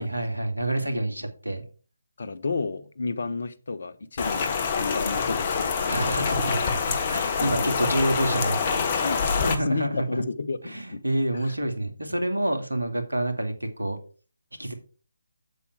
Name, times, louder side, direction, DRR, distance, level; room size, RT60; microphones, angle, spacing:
voice 1, 0.0-1.6 5.9-10.2 10.6-14.0 14.6-14.7, right 1 dB, 80° right, 2.3 m, -28 dB
voice 2, 2.2-6.4 7.4-7.9 9.0-11.0, left 4 dB, 50° left, 1.0 m, -32 dB
Rain, 4.2-9.6, left 5 dB, 30° left, 1.3 m, -26 dB
8.1 x 7.4 x 4.8 m
figure-of-eight pair, 150°, 0 cm